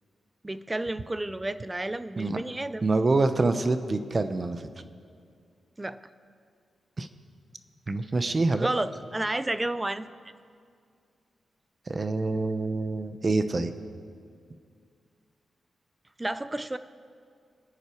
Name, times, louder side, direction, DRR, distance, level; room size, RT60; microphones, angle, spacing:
voice 1, 0.4-2.9 5.8-6.0 8.6-10.1 16.2-16.8, right 2 dB, 20° right, 13 dB, 0.6 m, -31 dB
voice 2, 2.8-4.6 7.0-7.1 7.9-8.7 11.9-13.7, right 3 dB, 35° right, 9 dB, 1.0 m, -26 dB
26.5 x 10.0 x 4.7 m, 2.2 s
cardioid pair, 95°, 0 cm